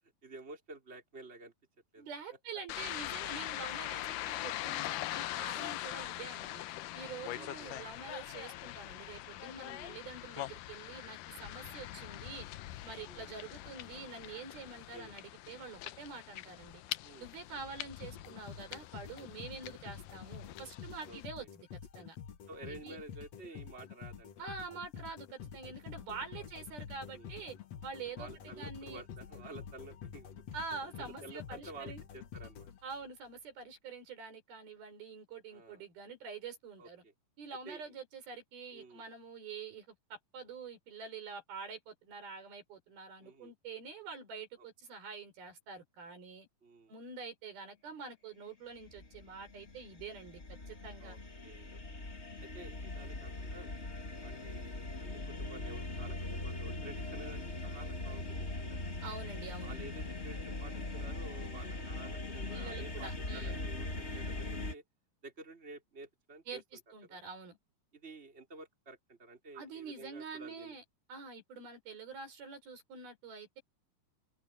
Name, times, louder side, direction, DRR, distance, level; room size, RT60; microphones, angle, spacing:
voice 1, 0.2-1.5 1.9-2.1 6.0-6.2 7.4-7.7 9.6-9.9 13.0-13.3 14.7-15.2 17.0-17.3 21.1-21.5 22.5-24.5 26.4-26.5 27.1-27.3 28.2-30.3 30.9-32.7 35.5-35.9 36.8-37.1 37.6-37.8 38.7-39.0 43.2-43.5 44.6-44.7 46.6-46.9 51.0-51.8 52.4-53.7 54.2-58.8 59.6-64.8 65.2-66.6 67.0-67.2 67.9-70.8, right 3 dB, 15° right, 4.5 m, -51 dB
voice 2, 2.0-6.6 6.9-12.5 12.8-16.8 17.2-21.7 22.0-22.2 22.6-23.0 24.4-27.6 27.8-29.0 30.5-32.0 32.8-37.0 37.4-46.5 46.9-51.2 59.0-59.8 62.5-63.7 66.5-67.6 69.5-70.8 71.1-73.6, right 5 dB, 70° right, 6.9 m, -46 dB
sound 1, 2.7-21.3, left 15 dB, 80° left, 2.1 m, -43 dB
sound 2, 18.0-33.3, left 8 dB, 55° left, 2.2 m, -48 dB
sound 3, 48.8-64.7, left 2 dB, 25° left, 1.6 m, -41 dB
omnidirectional pair, 4.4 m